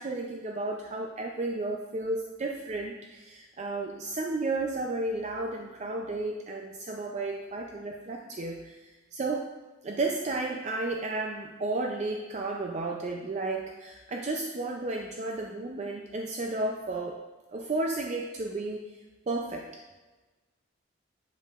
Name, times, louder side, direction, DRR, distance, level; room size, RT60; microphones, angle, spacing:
voice 1, 0.0-9.5 9.8-17.2 17.5-18.8 19.3-19.7, right 2 dB, 35° right, 1 dB, 0.4 m, -33 dB
8.9 x 5.4 x 2.4 m, 1.2 s
head